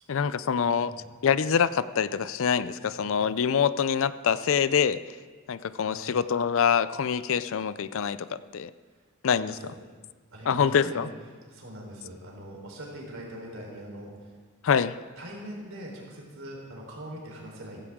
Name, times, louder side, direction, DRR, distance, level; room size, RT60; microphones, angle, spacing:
voice 1, 0.1-0.9 1.2-5.0 5.5-8.7 9.2-9.5 10.5-11.0 14.6-15.0, left 7 dB, 65° left, 15 dB, 0.5 m, -25 dB
voice 2, 0.6-1.1 2.7-2.9 5.8-6.2 8.9-9.0 9.3-9.7 10.3-11.1 11.5-14.3 15.2-17.9, right 1 dB, 70° right, -2 dB, 4.0 m, -42 dB
16.5 x 15.5 x 3.7 m, 1.5 s
head